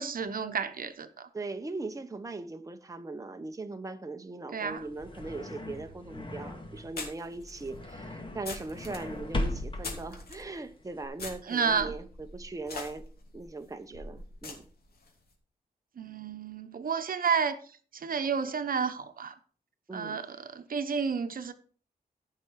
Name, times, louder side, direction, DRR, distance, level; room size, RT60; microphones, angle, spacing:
voice 1, 0.0-1.3 4.5-4.8 11.5-11.9 16.0-17.6 17.9-19.3 19.9-21.5, right 6 dB, 65° right, 0.9 m, -31 dB
voice 2, 1.3-13.0 13.3-14.6 19.9-20.2, right 3 dB, 20° right, 0.9 m, -39 dB
sound 1, 4.7-11.1, left 1 dB, 35° left, 1.8 m, -38 dB
sound 2, 5.9-6.0 7.0-10.4 11.2-15.1, left 3 dB, 85° left, 2.7 m, -43 dB
14.5 x 5.8 x 4.6 m
wide cardioid pair, 115°, 15 cm